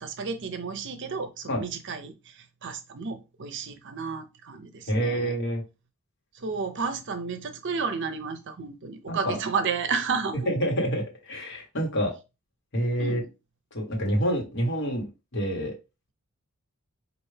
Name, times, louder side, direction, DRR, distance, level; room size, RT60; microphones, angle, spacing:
voice 1, 0.0-5.4 6.3-10.5 13.0-13.3, right 5 dB, 55° right, 0.6 m, -32 dB
voice 2, 4.9-5.6 9.1-9.4 10.5-12.1 12.7-13.2 13.7-15.0 15.3-15.7, equal, 55° left, 1.3 m, -27 dB
4.6 x 2.5 x 3.3 m
head